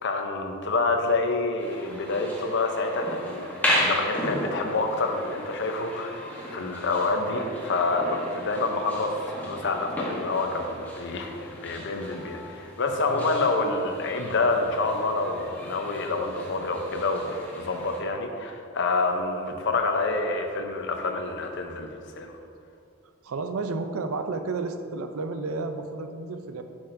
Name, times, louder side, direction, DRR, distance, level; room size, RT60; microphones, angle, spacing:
voice 1, 0.0-21.9 22.2-22.4, left 3 dB, 55° left, 4 dB, 0.7 m, -27 dB
sound 1, 1.6-18.0, equal, 10° left, 1.0 m, -35 dB
voice 2, 23.2-26.6, right 3 dB, 75° right, 7 dB, 0.5 m, -32 dB
8.3 x 6.1 x 2.6 m, 2.3 s
head